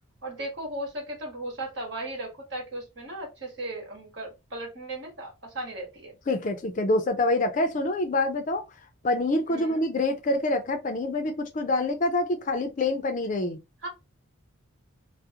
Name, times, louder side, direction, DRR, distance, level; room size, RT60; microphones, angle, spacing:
voice 1, 0.2-6.2 9.5-9.8 11.8-11.9 13.8-13.9, right 1 dB, 60° right, 1.2 m, -36 dB
voice 2, 6.3-8.6 9.0-13.6, left 2 dB, 40° left, 0.4 m, -26 dB
2.4 x 2.0 x 2.7 m
head